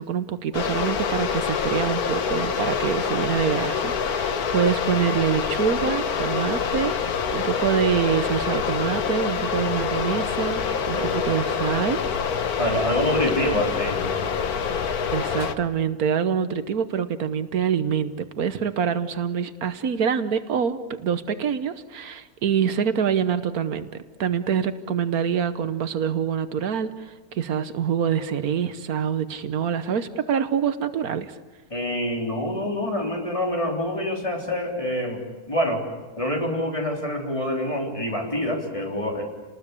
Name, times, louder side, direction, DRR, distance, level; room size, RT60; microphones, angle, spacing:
voice 1, 0.0-10.6 10.9-12.0 13.4-13.8 15.1-23.9 24.2-31.3, right 7 dB, 80° right, 11 dB, 1.5 m, -25 dB
sound 1, 0.5-15.5, left 6 dB, 80° left, 1.6 m, -26 dB
sound 2, 2.5-4.0 4.5-4.8 5.3-5.5 6.0-6.8 7.4-7.5 7.7-8.5 9.1-9.3 9.6-10.3, left 1 dB, 45° left, 4.8 m, -41 dB
voice 2, 10.9-11.4 12.6-14.1 31.7-35.2 35.5-35.8 36.2-39.2, left 1 dB, 20° left, 0 dB, 4.0 m, -26 dB
30.0 x 20.0 x 8.5 m, 1.2 s
omnidirectional pair, 1.6 m